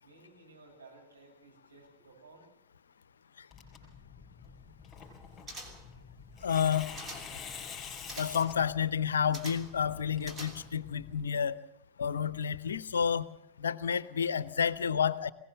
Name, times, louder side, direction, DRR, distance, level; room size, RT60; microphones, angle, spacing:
voice 1, 0.0-2.5, right 3 dB, 75° right, -1 dB, 7.3 m, -56 dB
Tearing, 3.5-11.3, left 6 dB, 15° left, 5.0 m, -47 dB
sound 1, 5.5-6.0 6.6-7.4 8.1-8.5 9.3-9.8 10.2-10.9 11.2-11.3, right 1 dB, 20° right, 3.2 m, -46 dB
voice 2, 6.4-6.9 8.2-11.6 12.0-13.3 13.6-15.3, left 7 dB, 70° left, 18 dB, 0.7 m, -30 dB
21.5 x 18.0 x 6.8 m, 0.78 s
figure-of-eight pair, 90°, 0 cm